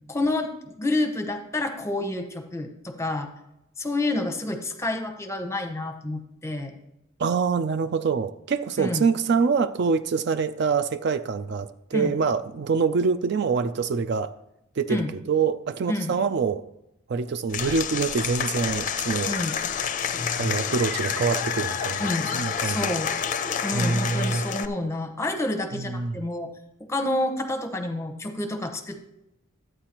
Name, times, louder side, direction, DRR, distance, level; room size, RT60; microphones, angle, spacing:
voice 1, 0.1-3.3 3.8-6.7 8.8-9.1 11.9-12.1 14.9-15.1 15.9-16.1 19.3-19.6 22.0-22.3 22.6-23.1 23.6-26.5 26.8-29.0, left 2 dB, 15° left, 0.8 m, -29 dB
voice 2, 7.2-14.3 14.8-16.6 17.1-19.4 20.3-22.9 23.7-24.4 25.7-26.2, right 5 dB, 50° right, 0.4 m, -25 dB
Applause / Crowd, 17.5-24.7, left 7 dB, 40° left, 0.5 m, -28 dB
13.5 x 8.8 x 2.9 m
head